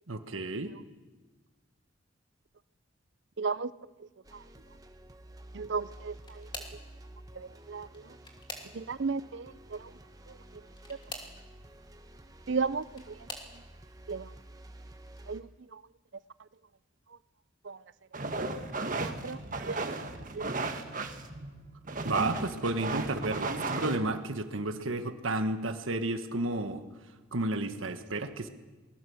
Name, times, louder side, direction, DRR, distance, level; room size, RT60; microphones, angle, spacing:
voice 1, 0.1-0.7 22.0-26.8 27.3-28.5, right 2 dB, 80° right, 8 dB, 1.5 m, -32 dB
voice 2, 3.4-3.7 5.5-6.5 7.4-7.9 8.7-9.8 12.5-13.1 14.1-14.3 15.3-15.5 17.7-17.8 19.0-19.4 19.6-19.9 20.3-20.5, right 4 dB, 60° right, 18 dB, 0.6 m, -34 dB
sound 1, 4.2-15.4, right 1 dB, 20° right, 1.1 m, -51 dB
sound 2, 5.8-6.9 7.8-9.1 10.7-11.4 12.5-13.6 14.3-14.7 15.1-15.2 16.5-16.6, left 2 dB, 25° left, 2.7 m, -45 dB
sound 3, 18.1-24.0, right 3 dB, 40° right, 1.5 m, -35 dB
20.5 x 20.5 x 7.2 m, 1.2 s
head